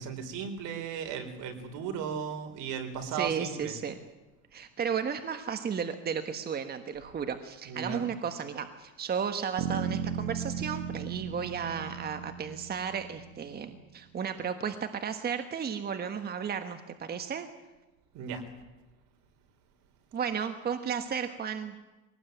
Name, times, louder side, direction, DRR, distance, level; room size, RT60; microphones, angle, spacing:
voice 1, 0.0-3.7 7.6-8.1 18.1-18.4, right 7 dB, 70° right, 6 dB, 4.3 m, -36 dB
voice 2, 3.1-4.0 4.5-17.5 20.1-21.7, right 7 dB, 30° right, 8 dB, 1.4 m, -34 dB
sound 1, 9.6-13.5, right 8 dB, 85° right, 1.2 m, -36 dB
22.5 x 18.5 x 9.2 m, 1.1 s
cardioid pair, 130°, 32 cm